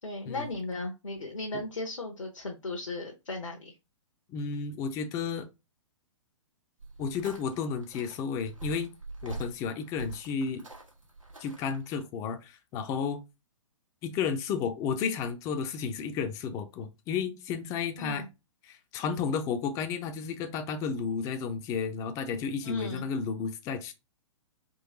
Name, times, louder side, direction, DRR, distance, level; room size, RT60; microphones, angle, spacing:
voice 1, 0.0-3.7 18.0-18.3 22.6-23.0, left 2 dB, 75° left, 1.0 m, -36 dB
voice 2, 4.3-5.5 7.0-8.9 9.2-10.7 11.4-13.2 14.0-18.2 18.6-23.9, left 6 dB, 20° left, 0.5 m, -32 dB
sound 1, 6.8-12.0, right 3 dB, 90° right, 1.5 m, -44 dB
3.8 x 3.0 x 2.9 m
figure-of-eight pair, 115°, 16 cm